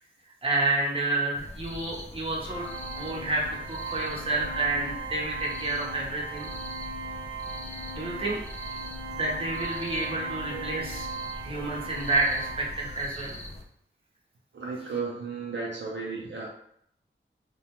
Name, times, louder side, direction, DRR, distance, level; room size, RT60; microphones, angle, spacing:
voice 1, 0.4-2.7 2.9-6.5 7.9-8.4 9.1-11.1 11.4-13.4, right 2 dB, 25° right, -4 dB, 0.8 m, -29 dB
sound 1, 1.3-13.6, left 1 dB, 30° left, 0.4 m, -42 dB
Organ, 2.4-13.2, right 4 dB, 90° right, 0.9 m, -39 dB
voice 2, 10.5-10.8 14.5-16.5, right 4 dB, 65° right, -3 dB, 0.5 m, -34 dB
2.4 x 2.2 x 2.9 m, 0.70 s
wide cardioid pair, 75°, 21 cm